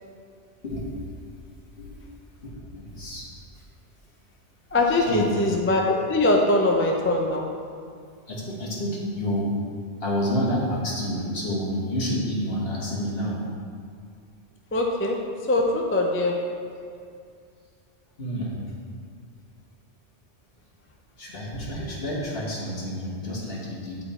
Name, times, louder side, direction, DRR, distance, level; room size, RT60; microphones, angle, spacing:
voice 1, 1.8-2.1 2.4-3.3 3.5-3.6 4.9-5.4 8.3-9.5 10.0-13.4 16.8-16.9 18.2-18.6 21.2-24.0, equal, 55° left, -5 dB, 1.7 m, -29 dB
voice 2, 4.7-7.4 14.7-15.2 15.5-16.4, left 2 dB, 15° left, 0 dB, 0.4 m, -22 dB
8.9 x 4.3 x 4.3 m, 2.2 s
omnidirectional pair, 1.2 m